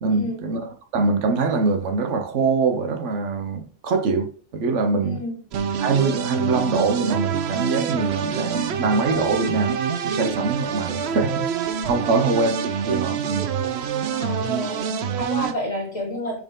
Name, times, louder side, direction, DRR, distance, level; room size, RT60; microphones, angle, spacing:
voice 1, 0.0-5.2 5.8-12.6 12.9-13.5, right 4 dB, 85° right, 1.2 m, -23 dB
sound 1, 5.5-15.5, right 7 dB, 70° right, 0.9 m, -26 dB
voice 2, 12.0-12.3 14.1-16.4, equal, 30° left, 1.9 m, -30 dB
6.0 x 4.4 x 3.7 m
omnidirectional pair, 1.2 m